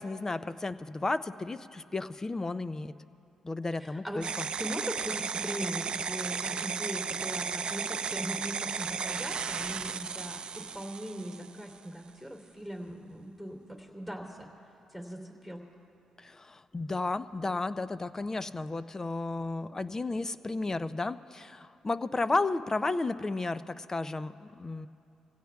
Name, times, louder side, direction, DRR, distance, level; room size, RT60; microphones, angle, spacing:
voice 1, 0.0-2.9 3.4-4.5 16.2-24.9, left 3 dB, 25° left, 13 dB, 0.5 m, -33 dB
voice 2, 3.8-4.2 4.6-14.5 14.9-15.6, equal, 5° left, 0 dB, 3.0 m, -40 dB
sound 1, 4.2-11.7, right 6 dB, 50° right, 0.5 m, -35 dB
25.0 x 16.5 x 2.4 m, 2.7 s
supercardioid pair, 65°, 2 cm